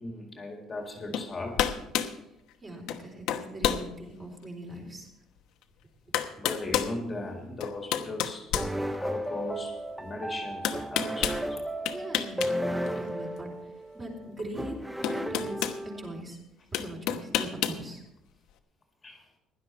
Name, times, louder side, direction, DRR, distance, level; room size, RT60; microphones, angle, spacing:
voice 1, 0.0-1.7 6.4-8.5 9.0-11.6 19.0-19.2, left 2 dB, 25° left, 2 dB, 2.0 m, -38 dB
sound 1, 1.1-1.3 1.6-2.2 2.9-3.0 3.3-3.9 4.4-4.5 5.6-5.7 6.1-6.9 7.6-9.3 10.6-11.4 11.9-12.5 12.8-13.0 14.4-14.5 15.0-15.8 16.7-17.8, left 10 dB, 80° left, 1.1 m, -29 dB
voice 2, 2.6-5.1 11.9-13.5 13.9-14.8 15.1-16.4 16.7-18.0, right 1 dB, 25° right, 0 dB, 4.1 m, -41 dB
sound 2, 8.5-16.2, equal, 5° right, 0.5 m, -34 dB
16.5 x 11.5 x 4.4 m, 0.84 s
cardioid pair, 145°, 0 cm